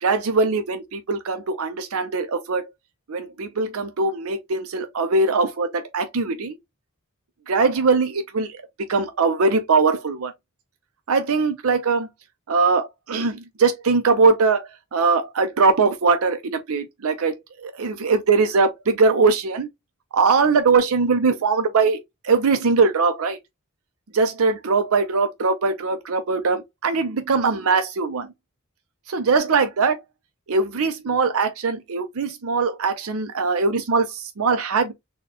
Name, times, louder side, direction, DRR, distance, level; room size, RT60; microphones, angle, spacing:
voice 1, 0.0-2.7 3.1-6.6 7.5-8.6 8.9-10.3 11.1-12.1 12.5-17.4 17.6-19.7 20.1-23.4 24.1-28.3 29.1-30.0 30.5-34.9, right 4 dB, 80° right, 0.6 m, -21 dB
4.1 x 2.3 x 2.8 m
head